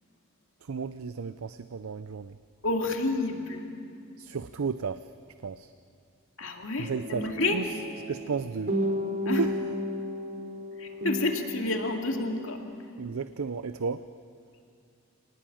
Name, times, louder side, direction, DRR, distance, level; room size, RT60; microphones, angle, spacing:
voice 1, 0.6-2.4 4.2-5.1 5.4-5.7 6.8-7.2 7.5-7.7 8.1-8.7 9.3-9.5 13.0-14.0, right 5 dB, 80° right, 12 dB, 0.5 m, -33 dB
voice 2, 2.6-3.7 6.4-7.6 9.2-9.4 10.8-12.6, left 2 dB, 65° left, 2 dB, 2.3 m, -29 dB
sound 1, 6.8-12.5, equal, 50° right, 3.1 m, -33 dB
25.5 x 18.5 x 8.7 m, 2.4 s
head